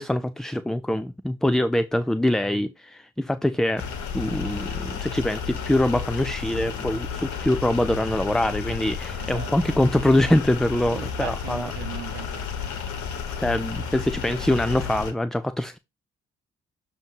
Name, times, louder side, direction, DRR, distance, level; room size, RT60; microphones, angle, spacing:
voice 1, 0.0-3.8 4.1-11.7 13.4-15.8, left 1 dB, ahead, 0.4 m, -24 dB
sound 1, 3.8-15.1, left 6 dB, 65° left, 1.3 m, -32 dB
voice 2, 9.2-9.8 10.9-12.8, right 11 dB, 65° right, 0.8 m, -39 dB
7.2 x 2.9 x 5.3 m
hypercardioid pair, 40°, 31 cm